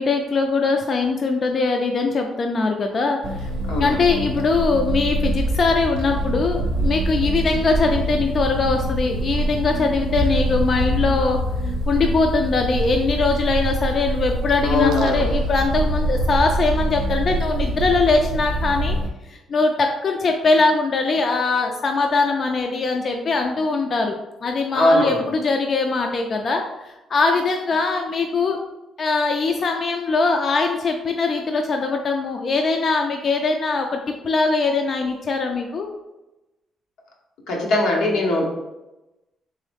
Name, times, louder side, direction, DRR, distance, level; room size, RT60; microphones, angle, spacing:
voice 1, 0.0-3.5 3.8-11.4 11.6-19.0 19.2-24.1 24.4-28.6 29.0-34.0 34.2-35.9, left 3 dB, 50° left, 3 dB, 0.4 m, -21 dB
sound 1, 3.2-19.1, right 1 dB, 85° right, 0.5 m, -24 dB
voice 2, 3.7-4.0 14.6-15.3 24.7-25.3 37.5-38.5, left 1 dB, 90° left, -2 dB, 1.0 m, -20 dB
3.6 x 3.1 x 3.4 m, 1.0 s
cardioid pair, 90°, 0 cm